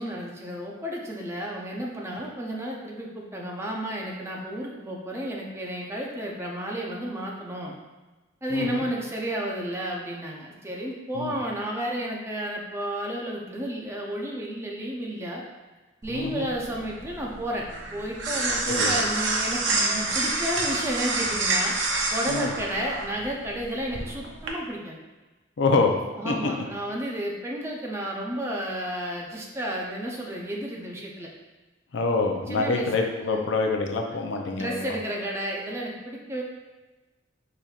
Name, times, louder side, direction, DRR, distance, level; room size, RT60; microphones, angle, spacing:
voice 1, 0.0-7.8 8.4-15.4 16.0-25.0 26.2-31.3 32.5-32.9 33.2-33.4 34.5-36.4, right 1 dB, 15° right, -2 dB, 0.6 m, -32 dB
voice 2, 8.5-8.8 11.1-11.3 16.1-16.5 18.7-18.9 22.3-22.5 25.6-26.3 31.9-34.9, left 3 dB, 70° left, 2 dB, 0.5 m, -26 dB
sound 1, 16.0-24.5, right 2 dB, 70° right, 0.7 m, -28 dB
5.0 x 4.3 x 2.4 m, 1.2 s
head